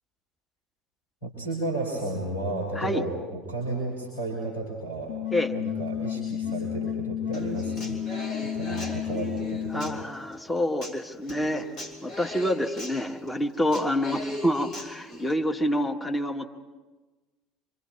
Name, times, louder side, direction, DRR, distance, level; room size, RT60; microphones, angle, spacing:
voice 1, 1.2-5.1 5.5-8.0 8.4-10.0, right 2 dB, 85° left, -4 dB, 4.9 m, -33 dB
sound 1, 5.1-10.0, left 10 dB, 65° left, 1.4 m, -32 dB
Human voice / Acoustic guitar, 7.3-15.3, left 1 dB, 50° left, 3.4 m, -39 dB
voice 2, 9.7-11.7 12.0-16.4, left 1 dB, 15° left, 4 dB, 1.6 m, -27 dB
27.5 x 25.0 x 4.6 m, 1.2 s
figure-of-eight pair, 65°, 0 cm